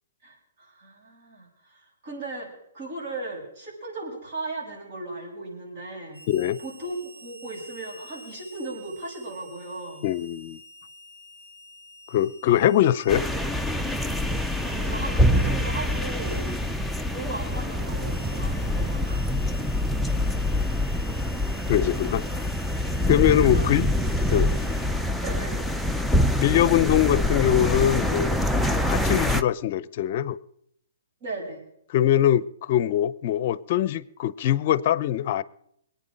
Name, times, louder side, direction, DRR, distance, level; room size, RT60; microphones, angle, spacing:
voice 1, 0.2-6.2 6.6-10.1 14.6-16.5 17.1-19.5 20.9-21.2 23.5-23.7 25.2-25.6 31.2-31.6, right 2 dB, 50° right, 6.5 m, -37 dB
Harmonica, 6.1-24.9, equal, 85° right, 6.4 m, -49 dB
voice 2, 6.3-6.6 10.0-10.6 12.1-13.3 21.7-22.2 23.1-23.9 24.3-24.5 26.4-28.4 28.9-30.4 31.9-35.4, left 11 dB, 45° left, 0.6 m, -22 dB
sound 1, 13.1-29.4, left 1 dB, ahead, 0.6 m, -25 dB
22.5 x 9.3 x 5.1 m
hypercardioid pair, 130°, 0 cm